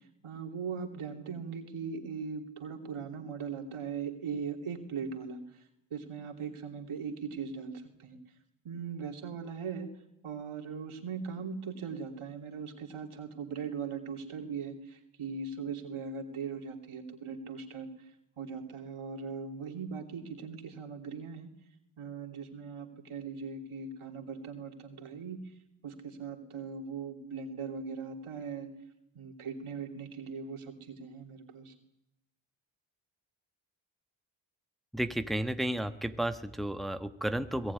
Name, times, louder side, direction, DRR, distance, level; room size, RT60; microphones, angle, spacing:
voice 1, 0.2-5.4 5.9-8.2 8.6-9.9 10.2-17.9 18.4-21.5 22.0-25.4 25.8-28.7 29.1-31.7, right 5 dB, 85° right, 6 dB, 3.1 m, -39 dB
voice 2, 34.9-37.7, right 1 dB, ahead, 9 dB, 1.3 m, -32 dB
22.0 x 19.5 x 9.7 m, 0.86 s
cardioid pair, 60°, 49 cm